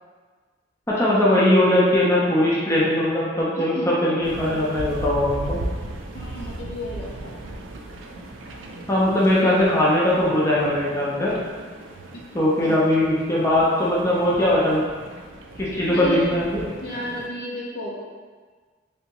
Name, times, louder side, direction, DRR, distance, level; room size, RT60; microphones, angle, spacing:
voice 1, 1.0-5.6 8.9-11.3 12.3-14.8 15.6-16.6, left 1 dB, 15° left, -6 dB, 0.5 m, -20 dB
voice 2, 3.6-4.0 6.1-7.4 12.1-12.2 12.6-12.8 15.9-16.4 16.8-18.0, equal, 60° left, -4 dB, 0.7 m, -32 dB
sound 1, 4.2-17.3, right 1 dB, 80° right, 0.4 m, -37 dB
3.3 x 2.8 x 2.9 m, 1.5 s
head